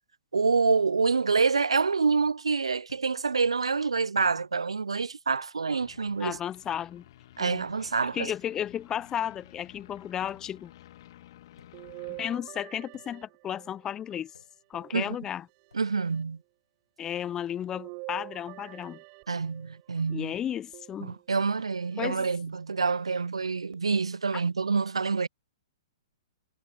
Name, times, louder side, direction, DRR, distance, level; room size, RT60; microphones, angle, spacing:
voice 1, 0.3-6.4 7.4-8.3 14.9-15.2 15.7-16.4 19.3-20.3 21.0-25.3, right 4 dB, 80° right, 0.4 m, -27 dB
sound 1, 1.4-1.8 2.9-3.2 4.4-4.8 5.9-6.3 7.5-7.8 10.3-10.7 11.6-12.0 12.9-13.3 14.4-14.8 15.7-16.0 17.4-17.6 18.8-19.2 20.2-20.5, left 4 dB, 80° left, 6.9 m, -61 dB
sound 2, 5.8-12.4, left 13 dB, 50° left, 2.1 m, -53 dB
voice 2, 6.2-7.0 7.4-7.7 8.1-10.7 12.1-14.3 14.7-15.5 17.0-19.0 20.1-21.2 22.0-22.3, left 10 dB, 20° left, 0.6 m, -33 dB
sound 3, 11.7-14.0 14.7-15.7 17.7-19.8 20.7-21.6 22.2-22.3 23.7-23.8, right 39 dB, 35° right, 4.7 m, -45 dB
figure-of-eight pair, 115°, 3 cm